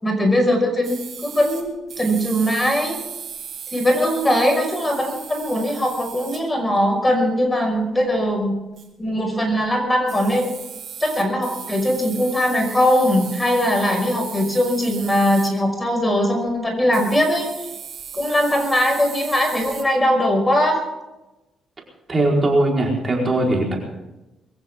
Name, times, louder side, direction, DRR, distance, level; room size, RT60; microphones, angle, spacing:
voice 1, 0.0-3.0 3.7-8.5 9.0-10.5 11.0-17.5 18.1-20.8, equal, 15° left, 3 dB, 5.7 m, -20 dB
sound 1, 0.8-6.4 8.8-9.0 9.7-9.8 10.1-15.6 16.9-19.8, right 7 dB, 60° right, 3.7 m, -36 dB
voice 2, 22.1-23.8, right 2 dB, 30° right, -1 dB, 4.6 m, -19 dB
23.5 x 15.0 x 3.8 m, 0.99 s
cardioid pair, 90°, 0 cm